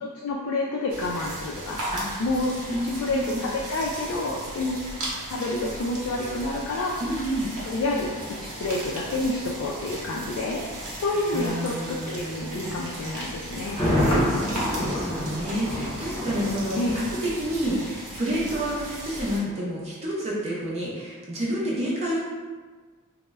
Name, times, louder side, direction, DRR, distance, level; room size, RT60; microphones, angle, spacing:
voice 1, 0.0-1.8 2.2-2.5 2.8-4.8 5.3-7.0 7.6-8.1 8.4-10.6 11.0-13.8 16.8-17.0, left 2 dB, 60° left, -3 dB, 0.3 m, -28 dB
sound 1, 0.9-19.4, right 1 dB, 70° right, 0.8 m, -37 dB
voice 2, 2.7-3.5 7.0-7.5 10.9-11.0 11.3-12.8 13.8-22.2, equal, 30° right, -6 dB, 0.5 m, -29 dB
Thunder, 13.6-17.5 17.8-17.9, left 1 dB, 25° left, 0.8 m, -27 dB
2.1 x 2.0 x 3.3 m, 1.4 s
head